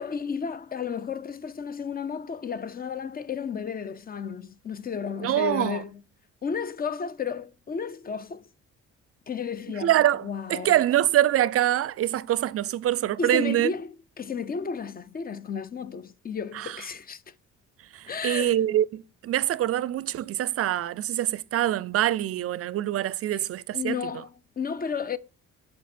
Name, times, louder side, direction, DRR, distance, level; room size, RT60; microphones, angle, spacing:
voice 1, 0.0-6.0 6.4-8.5 9.3-9.9 10.2-10.8 13.2-17.3 18.1-18.6 23.3-23.5 23.7-25.2, left 6 dB, 30° left, 0.4 m, -33 dB
voice 2, 5.2-5.8 9.8-10.2 10.5-13.7 16.5-16.7 17.9-24.0, right 12 dB, 50° right, 0.4 m, -24 dB
7.4 x 4.4 x 4.3 m
cardioid pair, 90°, 30 cm